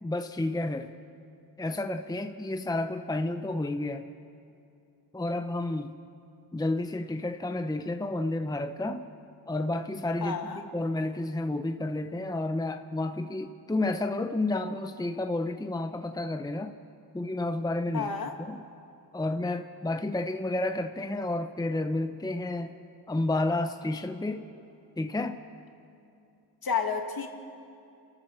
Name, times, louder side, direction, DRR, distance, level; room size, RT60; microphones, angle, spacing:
voice 1, 0.0-0.9 1.6-4.0 5.1-5.9 6.5-9.0 9.5-16.7 17.1-18.1 18.4-18.6 19.1-22.7 23.1-24.4 25.0-25.4, left 2 dB, 10° left, 8 dB, 0.8 m, -31 dB
voice 2, 10.2-10.6 17.9-18.3 26.6-27.3, left 5 dB, 60° left, 4 dB, 2.2 m, -30 dB
28.5 x 13.5 x 6.7 m, 2.6 s
cardioid pair, 80°, 41 cm